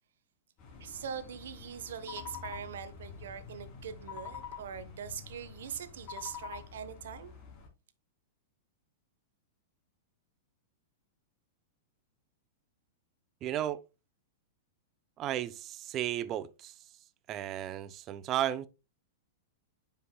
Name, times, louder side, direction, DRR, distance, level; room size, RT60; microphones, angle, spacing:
sound 1, 0.6-7.7, left 7 dB, 40° left, 3.0 m, -47 dB
voice 1, 0.8-7.3, right 8 dB, 80° right, 1.0 m, -42 dB
voice 2, 13.4-13.8 15.2-16.7 17.3-18.7, right 12 dB, 35° right, 0.6 m, -34 dB
9.7 x 5.4 x 2.2 m
hypercardioid pair, 135°, 0 cm